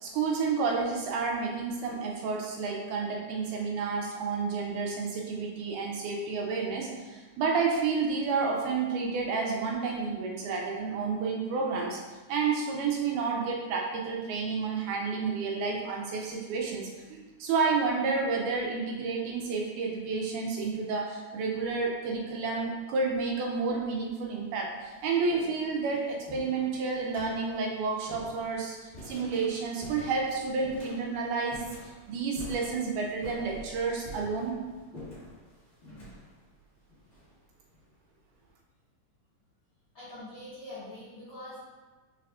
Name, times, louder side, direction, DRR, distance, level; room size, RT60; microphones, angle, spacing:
voice 1, 0.0-12.0 12.3-34.6, right 4 dB, 80° right, 0 dB, 1.9 m, -30 dB
sound 1, 21.5-21.9 22.9-23.0 23.8-23.9 24.3-37.8, equal, 55° left, 0.7 m, -48 dB
voice 2, 39.9-41.6, left 1 dB, 70° left, -11 dB, 1.1 m, -43 dB
4.7 x 4.1 x 2.3 m, 1.3 s
omnidirectional pair, 3.8 m